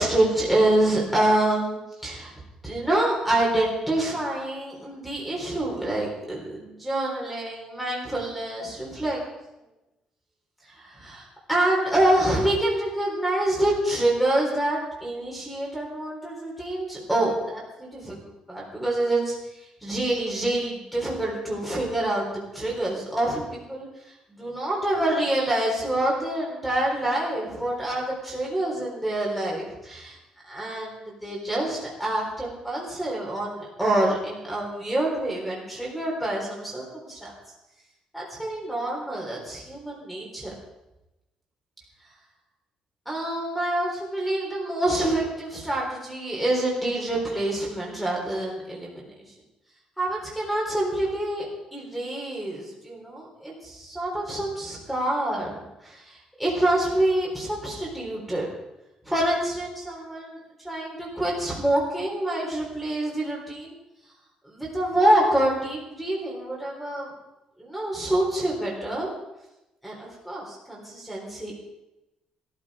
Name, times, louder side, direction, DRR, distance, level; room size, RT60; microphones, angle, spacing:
voice 1, 0.0-2.3 2.6-9.2 10.7-18.2 18.5-30.2 30.4-37.3 38.1-40.5 43.1-49.1 50.0-55.6 55.8-58.5 59.0-60.4 60.6-63.7 64.4-67.1 67.6-69.1 69.8-71.5, right 1 dB, ahead, -3 dB, 3.9 m, -26 dB
17.0 x 13.0 x 5.0 m, 0.94 s
cardioid pair, 170°, 2 cm